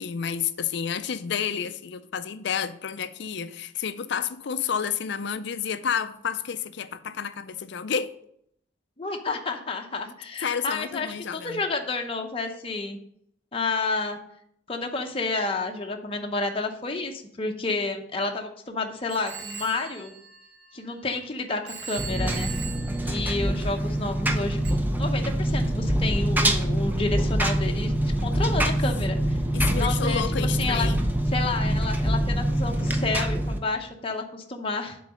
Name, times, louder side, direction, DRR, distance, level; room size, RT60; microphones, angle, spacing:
voice 1, 0.0-8.1 10.4-11.6 28.2-28.6 29.5-31.0, left 7 dB, 60° left, 0.5 m, -30 dB
voice 2, 9.0-13.0 13.5-14.2 14.7-20.1 20.7-22.5 23.0-24.6 25.0-27.9 28.2-29.4 29.7-30.9 31.3-35.0, left 3 dB, 30° left, 0.7 m, -30 dB
Telephone, 19.1-21.2 21.7-24.0 24.6-24.7, right 7 dB, 60° right, 0.9 m, -40 dB
Engine, 22.0-33.6, right 1 dB, 10° right, 0.5 m, -25 dB
7.3 x 3.9 x 6.3 m
head